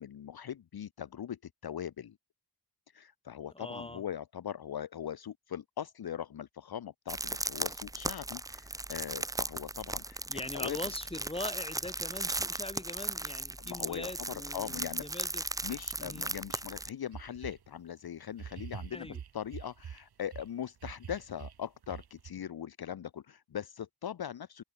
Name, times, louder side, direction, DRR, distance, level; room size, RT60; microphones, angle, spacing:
voice 1, 0.0-2.2 2.9-10.2 10.5-10.8 13.6-15.0 15.6-24.6, left 9 dB, 55° left, 0.9 m, -40 dB
voice 2, 3.5-4.0 10.3-15.4 16.0-16.3 18.9-19.2, left 2 dB, 10° left, 3.5 m, -42 dB
sound 1, 7.1-16.9, right 2 dB, 10° right, 0.4 m, -37 dB
sound 2, 17.1-17.7 18.3-20.5 20.8-22.3, right 8 dB, 60° right, 1.6 m, -45 dB
wide cardioid pair, 110°, 44 cm